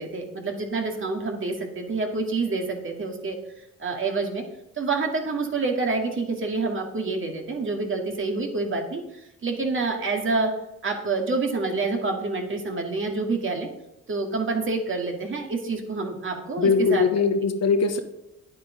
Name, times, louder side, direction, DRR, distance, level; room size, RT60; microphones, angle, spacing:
voice 1, 0.0-4.4 4.8-10.5 10.8-13.7 14.1-17.1, right 3 dB, 40° right, 2 dB, 2.4 m, -27 dB
voice 2, 16.6-18.0, left 5 dB, 60° left, 7 dB, 1.3 m, -21 dB
9.9 x 8.7 x 5.2 m, 0.85 s
cardioid pair, 90°, 30 cm